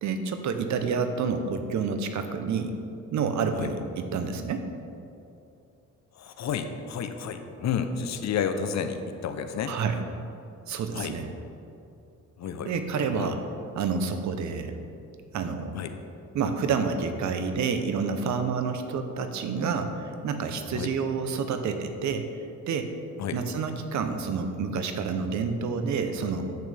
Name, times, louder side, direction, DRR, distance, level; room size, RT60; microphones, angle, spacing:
voice 1, 0.0-2.8 3.1-4.6 9.7-10.0 10.7-11.3 12.6-13.4 13.7-14.8 15.3-15.8 16.3-22.3 22.7-22.9 23.3-26.6, right 5 dB, 70° right, 7 dB, 0.9 m, -29 dB
voice 2, 6.2-9.8 10.9-11.1 12.4-12.7 13.1-13.3 15.7-15.9 20.7-20.9 23.2-23.4, left 7 dB, 65° left, 8 dB, 0.8 m, -31 dB
10.5 x 8.5 x 3.5 m, 2.7 s
cardioid pair, 90°, 30 cm